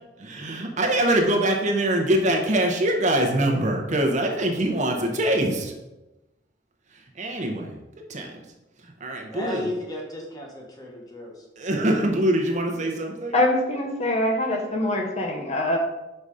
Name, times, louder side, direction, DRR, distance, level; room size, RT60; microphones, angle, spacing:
voice 1, 0.2-5.7 6.9-7.8 8.1-8.3 8.8-9.7 11.6-13.3, right 1 dB, 40° right, 2 dB, 0.9 m, -24 dB
voice 2, 9.3-11.5, left 1 dB, 20° left, 0 dB, 1.2 m, -34 dB
voice 3, 13.3-15.8, left 1 dB, 35° left, 1 dB, 0.9 m, -24 dB
5.4 x 4.0 x 4.9 m, 1.0 s
head